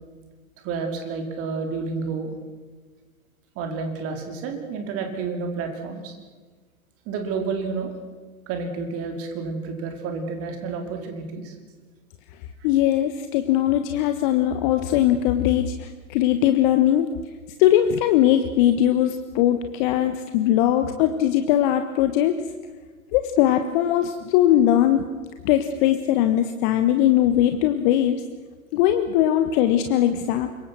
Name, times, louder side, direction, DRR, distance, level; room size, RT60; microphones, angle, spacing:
voice 1, 0.6-2.3 3.5-6.1 7.1-7.9 8.5-11.5, right 4 dB, 30° right, 4 dB, 4.5 m, -30 dB
voice 2, 12.6-17.1 17.6-22.4 23.1-25.1 25.4-28.2 28.7-30.5, left 11 dB, 35° left, 8 dB, 1.4 m, -20 dB
26.0 x 23.5 x 6.2 m, 1.4 s
figure-of-eight pair, 105°, 44 cm